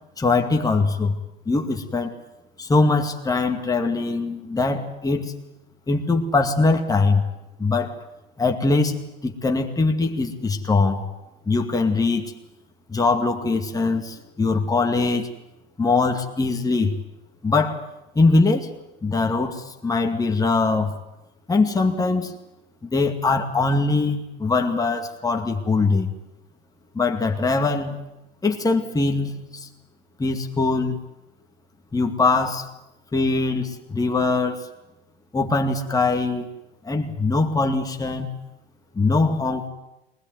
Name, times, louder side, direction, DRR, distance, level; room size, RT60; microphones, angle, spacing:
voice 1, 0.2-1.1 1.5-2.1 2.6-5.4 5.9-7.2 7.6-8.0 8.4-9.0 9.2-11.1 11.5-12.3 12.9-15.3 15.8-16.9 17.4-17.8 18.2-18.7 19.0-20.9 21.5-22.3 22.8-26.1 26.9-28.0 28.4-29.7 30.2-31.0 31.9-32.7 33.1-34.7 35.3-36.5 36.8-38.3 38.9-39.7, left 3 dB, 10° left, 3 dB, 2.3 m, -22 dB
22.5 x 20.0 x 9.4 m, 0.93 s
hypercardioid pair, 85°, 31 cm